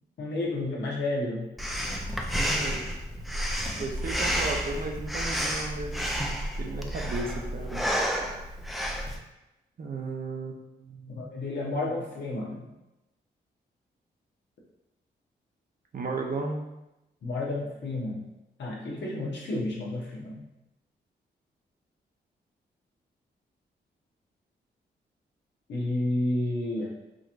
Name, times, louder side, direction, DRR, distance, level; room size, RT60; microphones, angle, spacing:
voice 1, 0.2-1.5 11.1-12.7 17.2-18.3 18.6-20.4 25.7-26.9, left 2 dB, 75° left, -4 dB, 1.1 m, -31 dB
Breathing, 1.6-9.2, equal, ahead, 0.5 m, -30 dB
voice 2, 2.4-2.8 3.7-6.0 6.6-7.9 9.8-10.5 10.9-11.1 15.9-16.6, right 3 dB, 50° right, 1 dB, 0.8 m, -34 dB
5.0 x 2.9 x 2.5 m, 0.97 s
cardioid pair, 65°, 18 cm